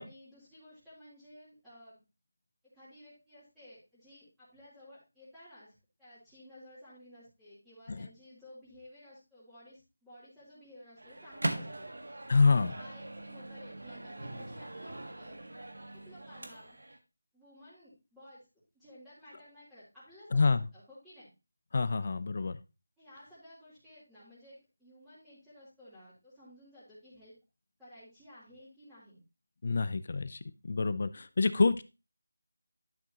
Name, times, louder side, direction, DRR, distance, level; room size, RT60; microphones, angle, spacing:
voice 1, 0.0-2.0 2.7-11.9 12.7-15.4 15.9-16.8 17.3-18.5 18.7-21.3 23.0-27.4 27.8-29.2, left 1 dB, 5° right, -14 dB, 3.3 m, -55 dB
Microwave oven, 11.0-17.0, right 1 dB, 75° right, 1.5 m, -41 dB
voice 2, 12.3-12.7 20.3-20.6 21.7-22.6 29.6-30.4 30.6-31.8, left 4 dB, 40° left, 14 dB, 0.5 m, -27 dB
11.0 x 6.3 x 2.9 m, 0.28 s
figure-of-eight pair, 175°, 0 cm